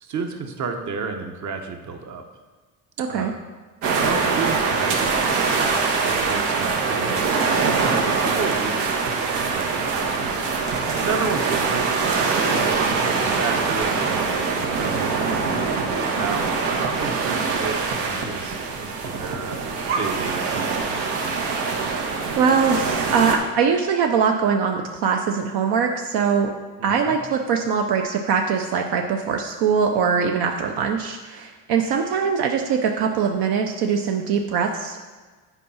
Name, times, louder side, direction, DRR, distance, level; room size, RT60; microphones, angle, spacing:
voice 1, 0.0-2.2 3.1-3.3 4.0-5.2 6.0-8.9 9.3-10.7 11.0-15.2 16.1-21.0 26.8-27.2, right 5 dB, 45° right, 5 dB, 1.0 m, -32 dB
voice 2, 3.0-3.3 22.4-26.5 26.8-35.0, right 6 dB, 70° right, 3 dB, 0.8 m, -22 dB
sound 1, 3.8-23.4, right 4 dB, 85° right, 1.3 m, -23 dB
8.2 x 4.7 x 5.6 m, 1.4 s
cardioid pair, 115°, 41 cm